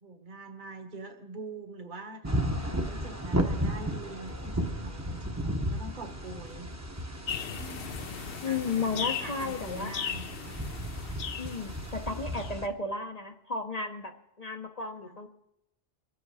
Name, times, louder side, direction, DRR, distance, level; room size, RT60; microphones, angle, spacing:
voice 1, 0.0-2.4 2.6-6.7 7.5-10.6 15.1-15.2, right 2 dB, 50° right, 4 dB, 1.5 m, -44 dB
sound 1, 2.2-12.7, equal, 15° right, 0.9 m, -34 dB
sound 2, 7.3-12.6, left 7 dB, 70° left, 0.9 m, -38 dB
voice 2, 8.4-9.9 11.4-14.1 14.4-15.3, left 4 dB, 40° left, 4 dB, 0.8 m, -33 dB
23.5 x 8.0 x 4.8 m, 0.85 s
omnidirectional pair, 1.0 m